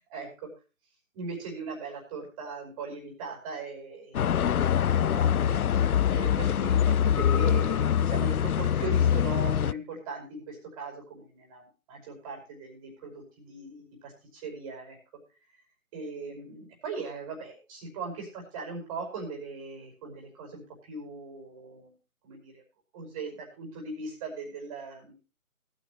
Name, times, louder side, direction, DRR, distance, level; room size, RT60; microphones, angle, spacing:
voice 1, 1.1-4.4 4.8-5.6 6.1-15.0 15.9-22.0 22.2-22.6 22.9-25.1, right 3 dB, 25° right, 1 dB, 5.3 m, -39 dB
sound 1, 4.1-9.7, left 9 dB, 85° left, 0.6 m, -24 dB
19.5 x 9.6 x 3.1 m, 0.33 s
figure-of-eight pair, 150°, 43 cm